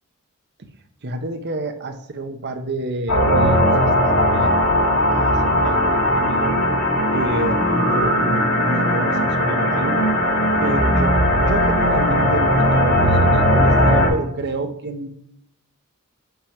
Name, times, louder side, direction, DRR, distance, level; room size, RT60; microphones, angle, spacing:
voice 1, 1.0-6.6 7.1-10.0 10.6-15.1, right 2 dB, 50° right, 7 dB, 0.8 m, -28 dB
sound 1, 3.1-14.1, equal, 80° left, 2.7 m, -18 dB
5.8 x 5.1 x 5.8 m, 0.70 s
head